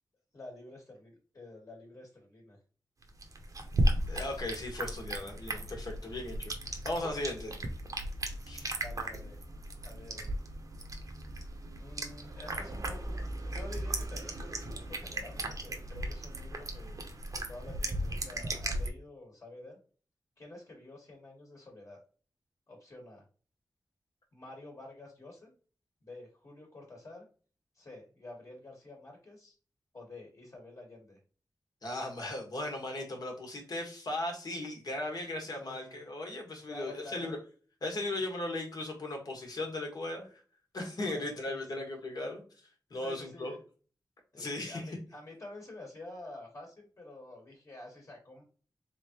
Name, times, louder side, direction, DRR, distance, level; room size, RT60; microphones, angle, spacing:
voice 1, 0.3-2.6 6.0-6.2 8.8-9.4 9.8-10.3 11.8-17.0 17.3-19.8 20.4-22.0 22.7-23.2 24.3-25.5 26.0-27.2 27.7-29.5 29.9-31.2 31.9-32.0 35.0-35.1 35.5-36.0 36.7-37.3 41.0-41.9 42.9-43.6 44.3-48.4, left 2 dB, 40° left, 0 dB, 1.5 m, -49 dB
sound 1, 3.0-18.9, right 1 dB, 50° right, 0.8 m, -36 dB
voice 2, 4.1-7.6 8.5-8.7 31.8-37.4 37.8-40.3 40.7-42.4 42.9-43.5 44.4-44.8, left 2 dB, 60° left, 1 dB, 1.5 m, -37 dB
3.7 x 3.6 x 2.9 m, 0.39 s
wide cardioid pair, 120°, 7 cm